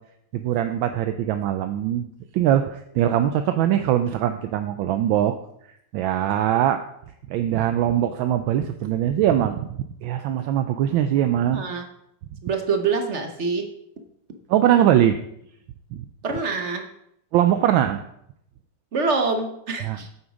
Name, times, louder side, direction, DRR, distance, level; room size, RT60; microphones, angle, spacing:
voice 1, 0.3-2.1 2.3-5.4 5.9-6.8 7.3-11.6 14.5-15.2 15.9-16.0 17.3-18.0 19.8-20.0, right 11 dB, 75° right, 8 dB, 1.3 m, -21 dB
voice 2, 11.5-11.8 12.4-13.7 16.2-16.9 18.9-20.1, right 4 dB, 45° right, 5 dB, 1.0 m, -25 dB
8.1 x 8.0 x 5.0 m, 0.75 s
omnidirectional pair, 2.3 m